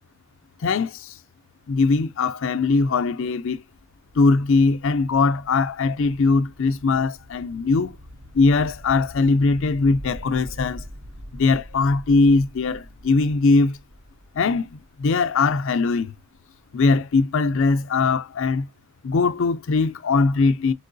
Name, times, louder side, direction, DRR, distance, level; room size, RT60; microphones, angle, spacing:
voice 1, 0.6-1.2 1.7-3.6 4.1-8.0 8.3-10.8 11.3-13.8 14.3-16.2 16.7-18.7 19.0-20.7, left 3 dB, 60° left, 0.5 m, -20 dB
sound 1, 3.4-16.7, equal, 25° right, 0.4 m, -44 dB
4.5 x 3.6 x 2.6 m
head